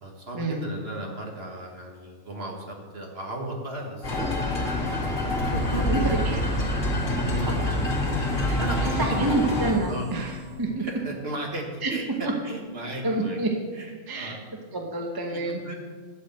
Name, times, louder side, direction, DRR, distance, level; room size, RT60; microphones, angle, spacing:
voice 1, 0.0-4.7 5.5-6.3 7.3-7.6 8.6-9.4 9.9-10.1 10.8-12.0 12.4-13.4 13.7-14.7 15.3-15.9, right 1 dB, 50° right, 0 dB, 1.8 m, -35 dB
sound 1, 4.0-9.7, left 2 dB, 75° left, 2.6 m, -27 dB
sound 2, 5.4-11.0, right 1 dB, 50° left, 1.9 m, -31 dB
voice 2, 5.9-6.4 6.6-6.7 8.5-10.8 11.8-11.9 13.0-13.5 14.1-14.3 14.7-15.6, right 2 dB, 20° right, 1 dB, 1.0 m, -28 dB
11.0 x 5.0 x 7.8 m, 1.5 s
omnidirectional pair, 1.3 m